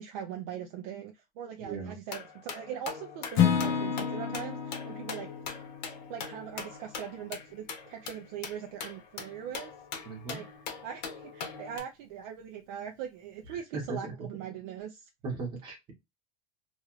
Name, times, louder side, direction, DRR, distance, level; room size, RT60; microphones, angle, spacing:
voice 1, 0.0-5.3 6.1-9.7 10.3-10.4 10.8-15.1, right 8 dB, 50° right, 0.5 m, -41 dB
voice 2, 1.6-2.0 10.0-10.4 13.5-14.3 15.2-15.9, right 4 dB, 20° right, 1.1 m, -38 dB
sound 1, 2.1-11.8, left 6 dB, 85° left, 1.1 m, -42 dB
Acoustic guitar / Strum, 3.3-7.4, left 8 dB, 55° left, 0.8 m, -31 dB
3.1 x 2.3 x 3.0 m
supercardioid pair, 175°, 21 cm